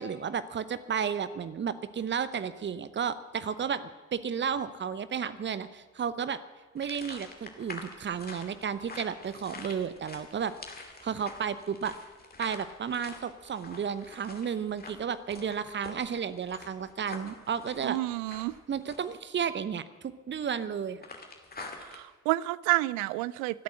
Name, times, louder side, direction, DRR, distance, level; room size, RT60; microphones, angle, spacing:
voice 1, 0.0-6.4 6.7-10.5 11.0-12.0 12.4-18.0 18.7-21.0, right 7 dB, 30° right, 0.9 m, -33 dB
sound 1, 6.8-19.2 21.0-22.0, left 3 dB, 25° left, 2.4 m, -46 dB
voice 2, 17.8-18.5 21.9-23.6, right 19 dB, 55° right, 0.5 m, -29 dB
24.0 x 8.4 x 6.4 m
figure-of-eight pair, 50°, 38 cm